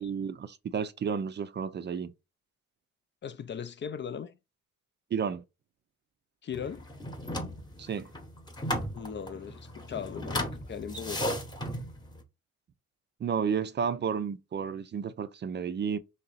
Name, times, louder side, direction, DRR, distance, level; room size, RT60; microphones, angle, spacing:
voice 1, 0.0-2.1 5.1-5.4 7.8-8.1 13.2-16.0, right 7 dB, 35° right, 0.4 m, -32 dB
voice 2, 3.2-4.4 6.4-6.9 8.9-11.4, left 7 dB, 40° left, 0.4 m, -38 dB
sound 1, 6.5-12.2, equal, 15° left, 0.9 m, -36 dB
3.2 x 2.8 x 3.9 m
cardioid pair, 90°, 30 cm